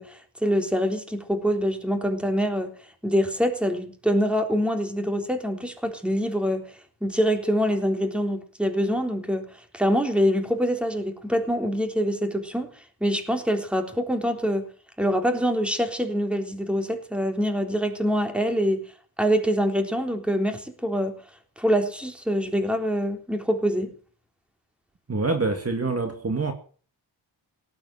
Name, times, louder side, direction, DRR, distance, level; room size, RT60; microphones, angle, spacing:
voice 1, 0.0-2.7 3.0-6.7 7.0-9.5 9.7-12.7 13.0-14.7 15.0-18.8 19.2-21.1 21.6-23.9, equal, ahead, 3.7 m, -25 dB
voice 2, 25.1-26.5, right 3 dB, 35° right, 2.5 m, -25 dB
18.5 x 9.1 x 7.8 m
wide cardioid pair, 110°, 43 cm